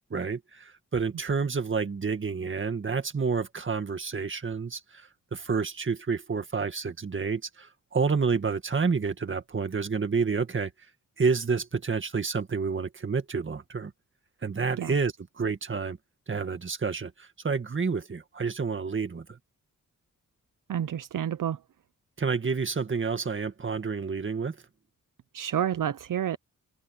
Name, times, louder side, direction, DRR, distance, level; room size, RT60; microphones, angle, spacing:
voice 1, 0.1-10.7 11.2-13.9 14.4-16.0 16.3-19.4 22.2-24.6, right 5 dB, 35° right, 1.9 m, -29 dB
voice 2, 20.7-21.6 25.3-26.4, right 10 dB, 70° right, 0.7 m, -29 dB
wide cardioid pair, 150°, 33 cm